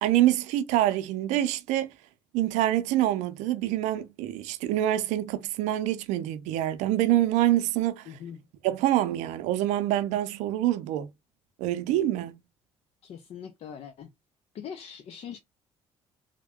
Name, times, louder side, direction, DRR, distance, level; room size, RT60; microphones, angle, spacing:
voice 1, 0.0-1.9 2.3-8.1 8.6-11.1 11.6-12.3, right 13 dB, 90° right, 0.5 m, -26 dB
voice 2, 8.1-8.4 13.0-14.1 14.5-15.4, left 8 dB, 60° left, 0.6 m, -41 dB
3.5 x 2.2 x 3.5 m
supercardioid pair, 80°, 12 cm